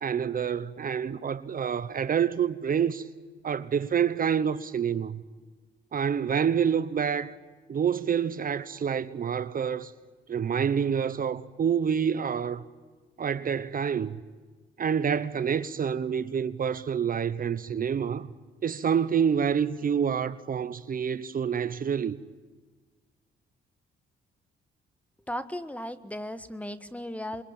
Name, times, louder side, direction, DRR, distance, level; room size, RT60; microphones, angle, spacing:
voice 1, 0.0-3.0 3.4-5.2 5.9-7.4 7.7-9.9 10.3-12.6 13.2-14.2 14.8-18.3 18.6-22.2, right 7 dB, 45° right, 1.1 m, -27 dB
voice 2, 25.3-27.4, left 1 dB, 5° left, 1.6 m, -36 dB
27.0 x 23.0 x 9.0 m
cardioid pair, 90°, 20 cm